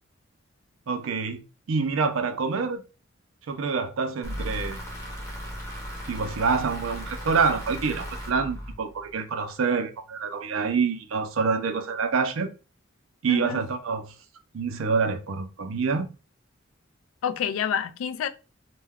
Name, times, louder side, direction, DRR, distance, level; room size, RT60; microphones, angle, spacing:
voice 1, 0.9-1.4 1.7-2.8 3.5-4.8 6.1-12.5 13.2-14.1 14.5-16.1, right 5 dB, 85° right, 0.5 m, -26 dB
sound 1, 4.2-9.2, equal, 15° left, 0.6 m, -36 dB
voice 2, 13.3-13.6 17.2-18.3, left 8 dB, 80° left, 0.3 m, -28 dB
2.2 x 2.2 x 3.4 m
head